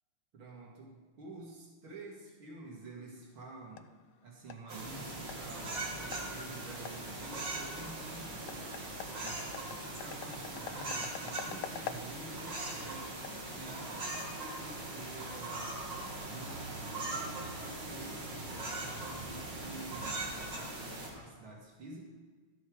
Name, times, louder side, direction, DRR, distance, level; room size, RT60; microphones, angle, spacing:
voice 1, 0.3-3.9 4.2-9.5 10.0-13.2 13.5-15.7 16.2-22.0, right 3 dB, 75° right, -3 dB, 2.8 m, -49 dB
sound 1, 3.1-14.9, left 9 dB, 90° left, 1.5 m, -49 dB
sound 2, 4.7-21.1, right 2 dB, 60° right, 2.5 m, -40 dB
13.0 x 7.1 x 4.8 m, 1.5 s
omnidirectional pair, 2.3 m